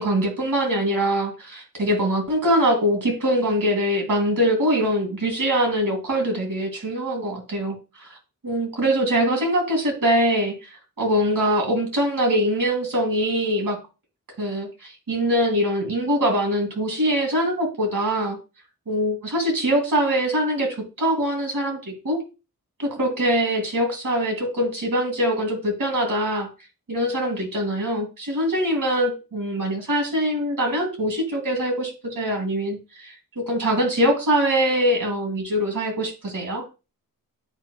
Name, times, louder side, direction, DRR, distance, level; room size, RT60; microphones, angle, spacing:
voice 1, 0.0-8.2 8.4-13.8 14.4-18.4 18.9-22.2 22.8-26.5 26.9-36.6, equal, 65° right, 1 dB, 2.8 m, -23 dB
9.8 x 4.6 x 2.3 m, 0.30 s
wide cardioid pair, 75°, 35 cm